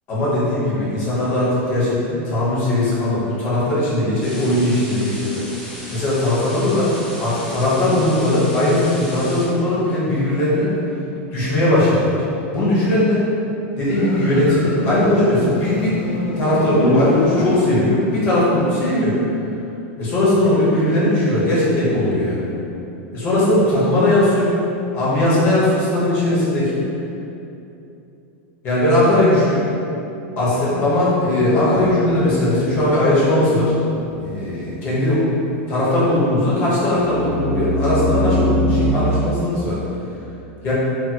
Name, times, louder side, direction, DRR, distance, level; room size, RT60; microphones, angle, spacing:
voice 1, 0.1-5.4 5.9-6.9 7.2-10.7 11.3-12.2 12.5-13.3 13.8-16.0 16.4-19.2 20.0-22.6 23.1-24.6 24.9-26.8 28.6-29.6 30.4-33.7 34.2-35.2 35.7-39.8 40.6-40.7, left 1 dB, 30° left, -8 dB, 1.0 m, -18 dB
sound 1, 4.2-9.5, equal, 5° left, 0.5 m, -36 dB
Motorcycle, 13.8-18.2, left 2 dB, 65° left, 0.4 m, -24 dB
sound 2, 31.7-34.5 36.9-38.9, left 1 dB, 70° right, 0.4 m, -24 dB
3.0 x 2.8 x 2.3 m, 2.8 s
supercardioid pair, 165°, 7 cm